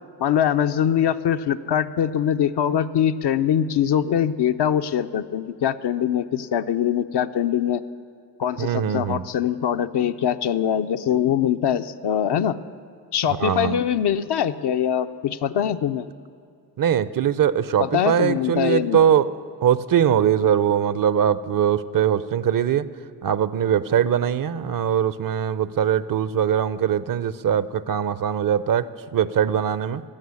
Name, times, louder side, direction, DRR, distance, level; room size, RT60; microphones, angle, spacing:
voice 1, 0.2-7.8 8.4-12.6 13.1-16.1 17.8-19.0, left 9 dB, 65° left, 9 dB, 0.7 m, -23 dB
voice 2, 8.6-9.2 13.3-13.8 16.8-19.3 19.6-22.9 23.2-30.0, right 9 dB, 50° right, 16 dB, 0.6 m, -21 dB
16.5 x 6.2 x 9.6 m, 2.3 s
cardioid pair, 50°, 43 cm